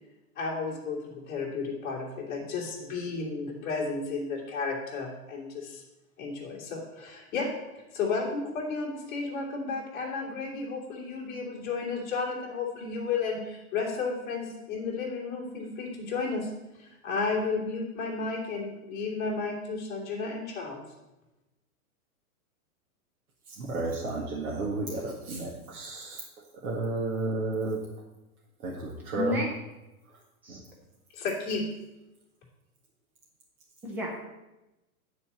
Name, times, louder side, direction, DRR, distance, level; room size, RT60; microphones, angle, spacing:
voice 1, 0.4-5.8 6.2-7.5 7.9-16.5 16.8-20.8 31.1-31.7, left 4 dB, 20° left, -5 dB, 2.4 m, -33 dB
voice 2, 23.6-26.2 26.6-27.8 28.6-29.4 30.5-30.6, right 3 dB, 75° right, -4 dB, 1.9 m, -32 dB
voice 3, 29.1-29.5 30.4-30.6 33.8-34.2, left 2 dB, 5° right, -1 dB, 0.5 m, -31 dB
9.5 x 4.3 x 7.3 m, 0.99 s
hypercardioid pair, 160°, 44 cm